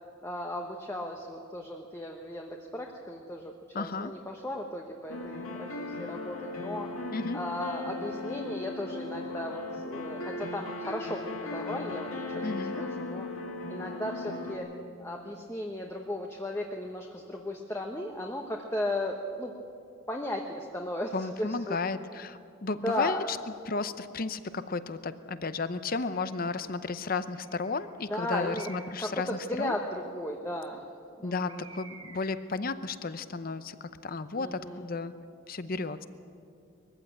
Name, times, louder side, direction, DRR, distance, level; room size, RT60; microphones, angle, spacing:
voice 1, 0.2-6.9 7.3-12.5 12.8-13.3 13.7-14.7 15.0-19.5 20.1-21.8 22.8-23.3 28.1-28.7 29.0-30.8 31.2-31.7 34.4-34.9, left 1 dB, 10° left, 1 dB, 1.0 m, -36 dB
voice 2, 3.7-4.1 7.1-7.4 12.4-12.8 21.1-23.4 23.7-29.7 31.2-35.1 35.5-36.1, left 3 dB, 45° left, 13 dB, 0.7 m, -33 dB
sound 1, 5.1-14.6, left 2 dB, 85° left, 2.4 m, -37 dB
Bird, 26.1-26.6 27.4-27.9 28.5-29.1 31.5-32.5, right 4 dB, 85° right, 4.4 m, -51 dB
21.5 x 15.0 x 9.1 m, 2.7 s
head